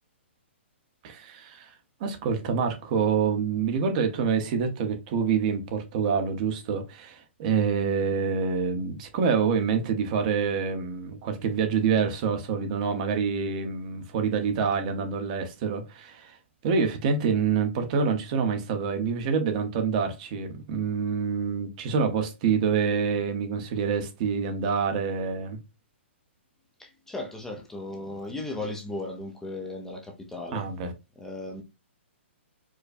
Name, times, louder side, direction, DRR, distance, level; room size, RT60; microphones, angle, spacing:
voice 1, 1.0-1.7 2.0-16.4 16.6-25.6 30.5-30.9, right 6 dB, 40° right, 0.8 m, -26 dB
voice 2, 26.8-30.6 31.2-31.6, left 2 dB, 5° left, 0.5 m, -36 dB
4.7 x 2.2 x 2.5 m
hypercardioid pair, 150°, 7 cm